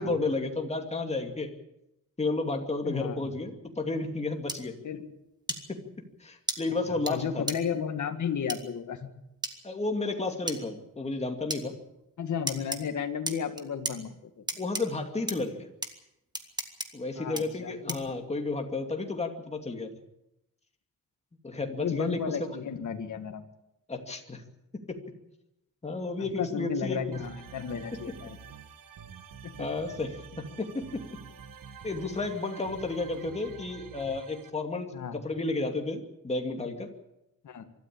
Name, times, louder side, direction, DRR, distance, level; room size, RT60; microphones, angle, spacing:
voice 1, 0.0-1.5 2.2-4.8 5.7-5.8 6.2-7.4 9.6-11.8 14.6-15.7 16.9-19.9 21.4-22.6 23.9-24.4 24.7-25.0 25.8-27.2 29.6-31.0 31.8-36.9, left 3 dB, 20° left, 4 dB, 2.6 m, -32 dB
voice 2, 2.8-3.2 4.8-5.1 6.9-9.1 12.2-14.2 17.2-18.0 21.5-23.5 26.2-28.4 29.4-29.7 33.2-33.3 34.9-35.2 37.4-37.6, left 7 dB, 60° left, 7 dB, 1.9 m, -33 dB
sound 1, 4.5-4.6 5.5-5.6 6.5-6.6 7.1-7.2 7.5-7.6 8.5-8.6 9.4-9.5 10.5-10.6 11.5-11.6 12.5-12.8 13.3-13.9 14.5-14.8 15.3-15.4 15.8-15.9 16.3-16.9 17.4-17.5 17.9-18.1, right 2 dB, 10° right, 1.9 m, -32 dB
sound 2, 27.1-34.5, right 6 dB, 75° right, 1.6 m, -47 dB
24.5 x 13.5 x 8.6 m, 0.88 s
wide cardioid pair, 140°, 33 cm